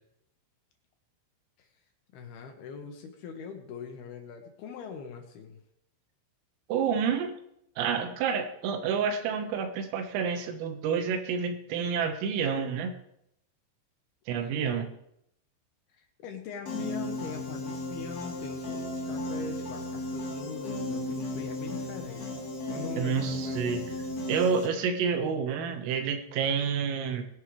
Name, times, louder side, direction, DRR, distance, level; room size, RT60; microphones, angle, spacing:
voice 1, 2.1-5.6 14.4-14.9 15.9-22.4 22.7-23.9, left 5 dB, 70° left, 4 dB, 2.5 m, -42 dB
voice 2, 6.7-7.3 7.8-13.0 14.3-14.9 23.0-23.8 24.3-27.2, right 6 dB, 85° right, 6 dB, 4.0 m, -29 dB
Piano, 16.7-24.7, left 1 dB, 45° left, 2.8 m, -35 dB
20.5 x 11.0 x 3.3 m, 0.75 s
omnidirectional pair, 5.8 m